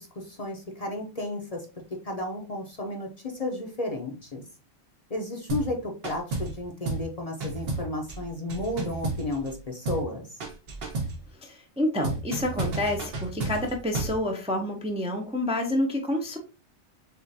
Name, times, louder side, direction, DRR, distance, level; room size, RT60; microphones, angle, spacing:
voice 1, 0.0-1.7 2.0-4.4 5.1-10.2, left 1 dB, 40° left, 1 dB, 0.7 m, -33 dB
sound 1, 5.5-5.8 6.0-6.6 6.9-7.1 7.4-9.6 9.9-10.1 10.4-11.2 12.0-14.2, right 3 dB, 60° right, 1.2 m, -32 dB
voice 2, 11.4-16.4, left 1 dB, 5° right, 2 dB, 0.5 m, -28 dB
6.7 x 2.4 x 2.6 m, 0.34 s
omnidirectional pair, 1.2 m